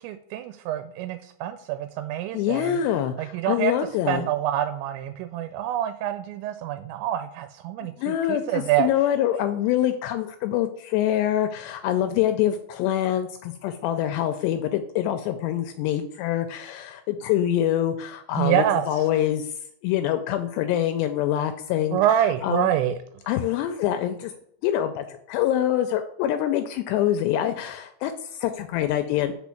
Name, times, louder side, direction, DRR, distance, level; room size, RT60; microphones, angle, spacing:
voice 1, 0.0-2.8 3.2-3.7 4.1-8.9 18.4-18.9 21.9-23.0, right 11 dB, 85° right, 10 dB, 2.8 m, -26 dB
voice 2, 2.3-4.3 7.8-19.5 19.8-22.7 23.3-24.3 24.6-29.3, left 11 dB, 85° left, 8 dB, 2.5 m, -25 dB
6.1 x 4.4 x 5.7 m, 0.70 s
omnidirectional pair, 5.2 m